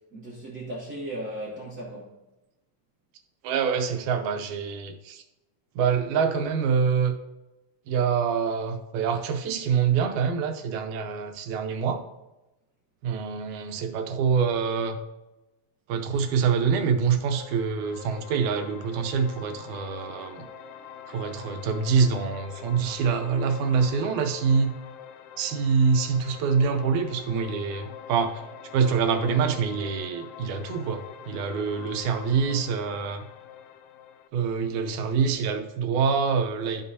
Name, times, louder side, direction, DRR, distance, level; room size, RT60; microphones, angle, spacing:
voice 1, 0.1-2.2, right 1 dB, 50° right, 1.1 m, -36 dB
voice 2, 3.4-5.2 5.8-7.1 7.9-12.0 13.0-15.0 15.9-20.5 21.1-24.7 25.4-28.4 28.7-33.2 34.3-36.8, right 6 dB, 80° right, 2.2 m, -25 dB
sound 1, 17.3-34.3, left 9 dB, 90° left, 1.3 m, -44 dB
12.5 x 5.5 x 2.7 m
omnidirectional pair, 3.4 m